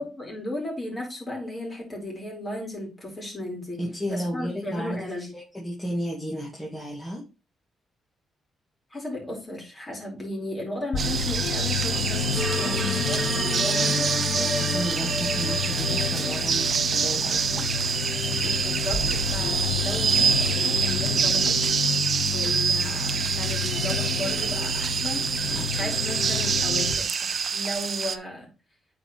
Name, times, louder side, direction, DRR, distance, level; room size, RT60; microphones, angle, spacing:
voice 1, 0.0-3.8 4.1-5.2 8.9-14.1 18.4-21.6 22.3-28.5, left 1 dB, 25° left, -1 dB, 4.1 m, -35 dB
voice 2, 3.8-7.3 13.7-18.0 25.4-25.9, equal, 10° left, -3 dB, 1.9 m, -34 dB
sound 1, 10.9-26.9, left 6 dB, 65° left, 1.1 m, -30 dB
sound 2, 11.0-28.2, right 6 dB, 50° right, 0.6 m, -26 dB
sound 3, 12.3-19.3, left 2 dB, 40° left, 2.0 m, -34 dB
8.8 x 4.8 x 3.0 m, 0.31 s
cardioid pair, 95°, 0 cm